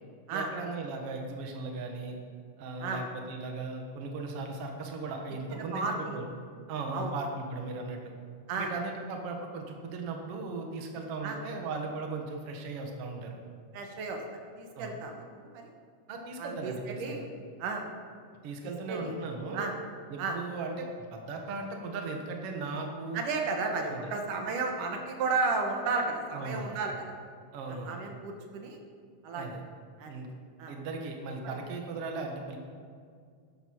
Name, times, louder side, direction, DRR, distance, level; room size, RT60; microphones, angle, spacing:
voice 1, 0.3-2.2 2.6-6.3 6.7-8.1 8.6-13.4 14.8-15.0 16.1-17.3 18.4-19.7 20.1-23.2 23.9-24.1 26.3-26.8 27.5-28.0 29.4-29.6 30.1-30.3 30.7-32.6, right 3 dB, 55° right, 2 dB, 2.1 m, -37 dB
voice 2, 5.3-6.2 6.9-7.1 8.5-8.7 11.2-11.4 13.7-15.7 16.4-17.2 17.6-17.9 18.6-19.1 19.5-19.7 20.2-20.4 23.1-26.9 27.9-28.8 29.2-29.4 30.0-30.2 30.6-30.7 31.5-31.6, right 4 dB, 85° right, 3 dB, 2.8 m, -33 dB
13.0 x 11.0 x 4.6 m, 2.1 s
omnidirectional pair, 3.6 m